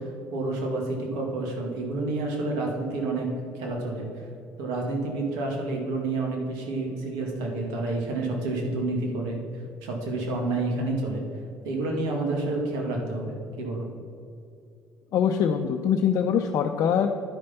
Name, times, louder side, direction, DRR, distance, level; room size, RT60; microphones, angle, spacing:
voice 1, 0.3-3.3 3.6-4.1 4.6-9.4 9.8-11.2 11.6-13.9, right 2 dB, 80° right, 1 dB, 1.9 m, -29 dB
voice 2, 15.1-17.1, left 8 dB, 60° left, 3 dB, 0.6 m, -23 dB
10.5 x 5.2 x 5.7 m, 2.5 s
supercardioid pair, 70°, 6 cm